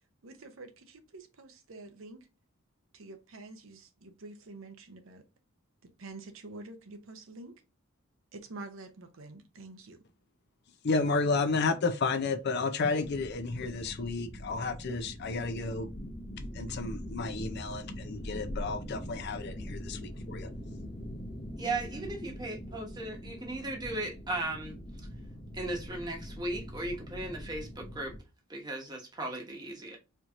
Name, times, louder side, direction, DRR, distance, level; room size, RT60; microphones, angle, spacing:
voice 1, 0.2-2.3 2.9-5.2 6.0-7.6 8.3-10.0 21.6-22.2, right 2 dB, 70° right, 0.7 m, -47 dB
voice 2, 10.8-15.9 16.5-20.5, left 4 dB, 50° left, 0.5 m, -32 dB
sound 1, 13.0-28.2, equal, 25° left, 0.9 m, -42 dB
voice 3, 21.6-24.8 25.5-28.1 28.5-30.0, right 2 dB, 20° right, 1.0 m, -36 dB
4.4 x 2.9 x 2.5 m
head